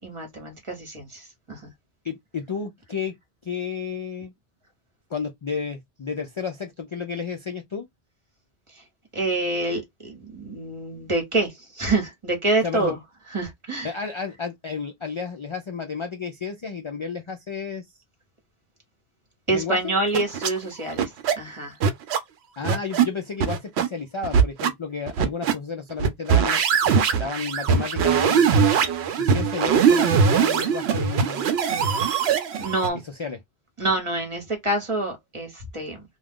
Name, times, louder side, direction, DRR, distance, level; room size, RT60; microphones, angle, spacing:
voice 1, 0.0-1.7 8.7-8.8 9.1-13.0 13.3-13.9 19.5-21.8 32.6-33.0 33.8-36.0, right 2 dB, 30° right, 1.1 m, -27 dB
voice 2, 2.0-3.1 3.4-4.3 5.1-7.9 12.6-12.9 13.8-17.8 19.5-19.9 22.6-26.6 27.1-28.6 29.2-31.4 33.0-33.4, left 5 dB, 50° left, 0.3 m, -32 dB
sound 1, 20.1-20.5 21.0-21.3 21.8-22.2 22.6-23.0 23.4-23.9 24.2-24.7 25.1-25.5 26.0-32.9, right 6 dB, 80° right, 0.9 m, -21 dB
2.4 x 2.3 x 3.5 m
omnidirectional pair, 1.1 m